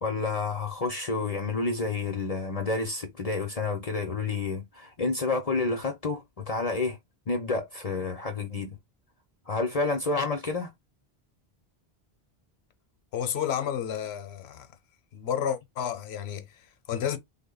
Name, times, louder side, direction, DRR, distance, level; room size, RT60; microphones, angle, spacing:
voice 1, 0.0-7.0 7.3-8.8 9.5-10.7, left 3 dB, 45° left, 0.6 m, -29 dB
voice 2, 13.1-14.8 15.1-17.2, left 9 dB, 80° left, 0.9 m, -31 dB
3.6 x 2.1 x 3.7 m
omnidirectional pair, 1.1 m